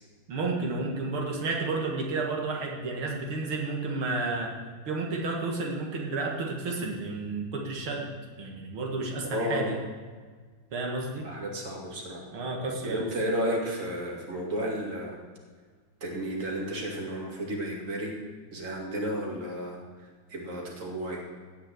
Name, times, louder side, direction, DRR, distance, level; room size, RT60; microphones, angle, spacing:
voice 1, 0.3-4.5 4.9-8.1 8.4-9.8 10.7-11.2 12.3-13.1, right 3 dB, 85° right, -1 dB, 2.6 m, -31 dB
voice 2, 9.3-9.7 11.2-12.2 12.8-15.1 16.0-18.1 18.5-19.8 20.3-21.2, equal, 40° right, -1 dB, 2.7 m, -32 dB
16.5 x 5.8 x 9.0 m, 1.5 s
omnidirectional pair, 2.3 m